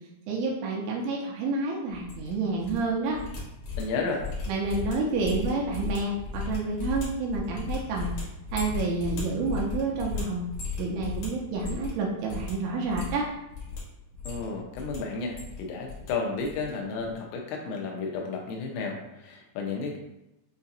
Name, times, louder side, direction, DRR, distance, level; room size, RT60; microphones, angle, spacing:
voice 1, 0.3-3.2 4.5-8.1 8.5-10.5 10.8-13.3, right 3 dB, 85° right, -2 dB, 2.8 m, -29 dB
sound 1, 1.9-2.8 3.0-12.0 12.2-12.5 12.8-13.8 14.1-15.0 15.2-16.1 16.4-16.7 17.0-17.2, left 4 dB, 60° left, 2.1 m, -36 dB
voice 2, 3.8-4.3 14.3-20.0, left 4 dB, 85° left, 1 dB, 3.3 m, -32 dB
7.6 x 2.7 x 2.4 m, 0.91 s
omnidirectional pair, 5.7 m